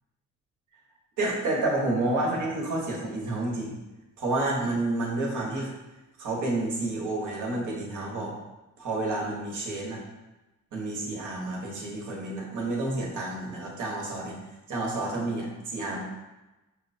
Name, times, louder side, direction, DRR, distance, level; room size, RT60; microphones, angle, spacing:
voice 1, 1.2-3.7 4.2-5.7 6.2-8.3 8.8-10.0 10.7-14.4 14.7-16.0, right 2 dB, 80° right, -3 dB, 1.2 m, -29 dB
6.3 x 2.1 x 2.7 m, 1.0 s
cardioid pair, 90°, 30 cm